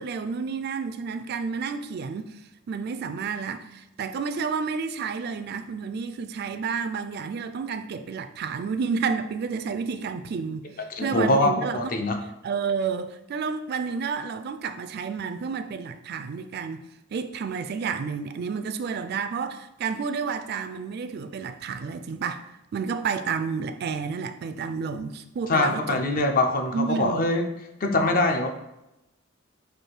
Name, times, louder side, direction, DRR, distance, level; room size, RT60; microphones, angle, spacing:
voice 1, 0.0-11.8 12.4-22.4 22.7-26.2 26.7-27.2, right 5 dB, 50° right, 0.3 m, -30 dB
voice 2, 11.0-12.2 25.5-27.5 27.8-28.5, left 2 dB, 45° left, 0.5 m, -23 dB
4.8 x 2.5 x 4.4 m
head